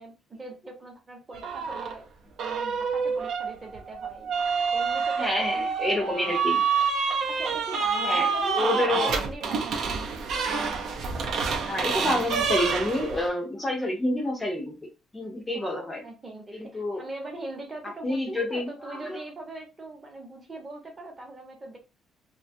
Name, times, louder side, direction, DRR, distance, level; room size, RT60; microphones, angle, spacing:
voice 1, 0.0-2.1 2.4-4.3 4.7-5.6 6.0-6.3 7.3-10.2 15.5-15.7 16.0-21.8, right 2 dB, 20° right, 2 dB, 0.8 m, -41 dB
sound 1, 1.3-1.9 2.4-13.3, right 5 dB, 60° right, 0.5 m, -27 dB
voice 2, 5.2-6.6 8.0-8.3 8.6-9.2 11.6-14.7 15.1-16.0 16.5-17.0 18.0-19.1, left 1 dB, 10° left, 0 dB, 0.5 m, -28 dB
2.6 x 2.2 x 2.6 m, 0.29 s
cardioid pair, 150°, 0 cm